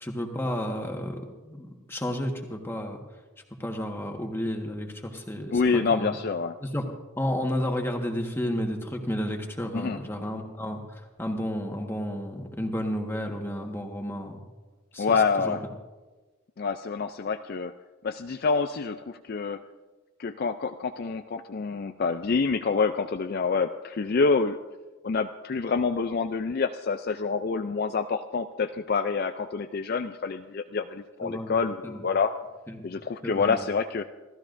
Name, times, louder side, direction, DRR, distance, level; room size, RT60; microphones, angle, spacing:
voice 1, 0.0-3.0 3.6-6.2 6.6-6.8 7.2-14.4 14.9-15.6 31.2-31.5 31.8-32.0 32.7-32.8 33.2-33.6, equal, 10° left, 2 dB, 1.4 m, -32 dB
voice 2, 5.5-6.6 9.7-10.0 15.0-15.6 16.6-17.7 18.0-19.6 20.2-24.6 25.0-32.3 32.8-34.0, left 4 dB, 45° left, 8 dB, 0.4 m, -27 dB
28.0 x 13.5 x 2.6 m, 1.2 s
head